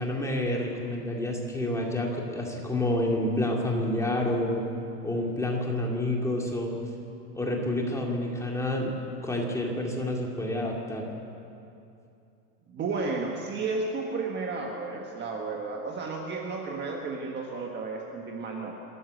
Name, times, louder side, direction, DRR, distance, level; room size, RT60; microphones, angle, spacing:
voice 1, 0.0-4.6 5.0-6.7 7.3-8.9 9.2-11.1, left 1 dB, 5° left, -1 dB, 2.5 m, -28 dB
voice 2, 12.7-18.7, right 3 dB, 20° right, 1 dB, 1.6 m, -33 dB
26.5 x 14.0 x 8.0 m, 2.7 s
supercardioid pair, 155°, 50 cm